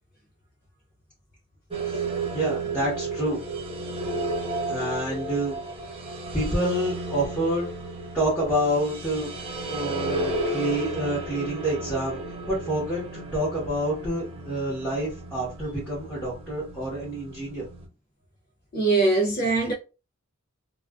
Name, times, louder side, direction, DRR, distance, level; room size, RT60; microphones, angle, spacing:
sound 1, 1.7-17.9, right 2 dB, 25° right, 0.3 m, -33 dB
voice 1, 2.3-3.4 4.7-5.6 6.3-7.7 8.1-9.3 9.7-12.2 12.5-17.6, right 1 dB, 5° left, 0.9 m, -28 dB
voice 2, 18.7-19.7, right 3 dB, 40° left, 0.4 m, -22 dB
2.4 x 2.2 x 2.3 m
head